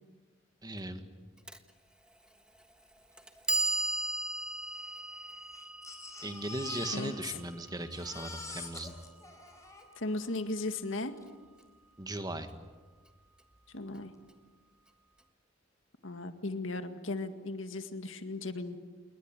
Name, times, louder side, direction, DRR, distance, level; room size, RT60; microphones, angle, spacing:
voice 1, 0.6-1.0 6.2-8.9 12.0-12.5, right 1 dB, 20° right, 8 dB, 1.7 m, -38 dB
Clock, 1.5-1.6 2.5-2.6 3.2-9.2, right 2 dB, 5° right, 1.4 m, -37 dB
Crying sobbing, 3.4-3.5 3.7-3.8 4.6-7.5 7.8-10.3 11.2-11.3 11.6-11.7, left 3 dB, 15° left, 4.4 m, -45 dB
voice 2, 10.0-11.1 13.7-14.1 16.0-18.8, left 2 dB, 85° left, 8 dB, 2.0 m, -36 dB
28.5 x 21.0 x 9.0 m, 1.4 s
head